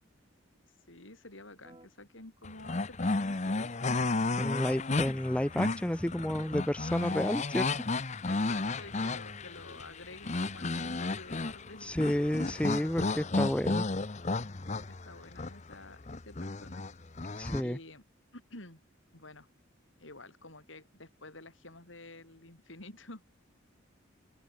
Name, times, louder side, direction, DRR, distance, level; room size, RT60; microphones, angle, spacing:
voice 1, 0.9-3.9 8.2-12.2 14.9-16.8 17.2-18.0 18.3-18.8 19.1-19.5 20.0-23.2, left 2 dB, 75° left, 6.3 m, -50 dB
sound 1, 1.6-1.9 4.4-6.8, right 1 dB, 25° right, 7.7 m, -58 dB
sound 2, 2.4-17.6, left 3 dB, 35° left, 0.8 m, -33 dB
voice 2, 4.4-7.7 11.8-13.9 17.4-17.8, left 1 dB, 5° left, 0.5 m, -31 dB
open air
head